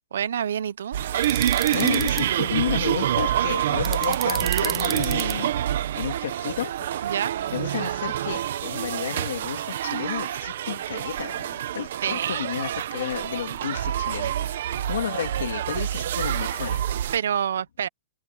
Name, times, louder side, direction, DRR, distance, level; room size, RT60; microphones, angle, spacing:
voice 1, 0.1-1.0 7.0-7.3 12.0-12.5 17.1-17.9, right 9 dB, 90° right, 0.9 m, -27 dB
sound 1, 0.9-17.2, right 11 dB, 60° right, 1.0 m, -27 dB
sound 2, 1.2-2.2 3.8-5.3, right 8 dB, 15° right, 0.5 m, -31 dB
voice 2, 1.4-5.5 6.0-7.1 7.5-17.1, left 10 dB, 85° left, 2.8 m, -32 dB
supercardioid pair, 175°, 0 cm